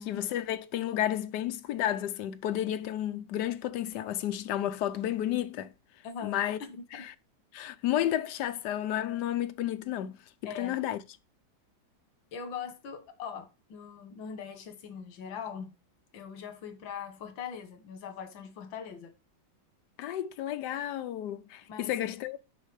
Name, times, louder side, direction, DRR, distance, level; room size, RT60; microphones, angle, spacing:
voice 1, 0.1-5.7 6.2-6.6 6.9-7.1 7.5-10.1 10.6-11.0 20.0-22.4, left 12 dB, 70° left, 1.2 m, -31 dB
voice 2, 6.0-7.1 10.4-10.8 12.3-15.7 16.1-19.1 21.7-22.0, left 7 dB, 85° left, 1.9 m, -41 dB
6.5 x 5.5 x 4.9 m
omnidirectional pair, 2.0 m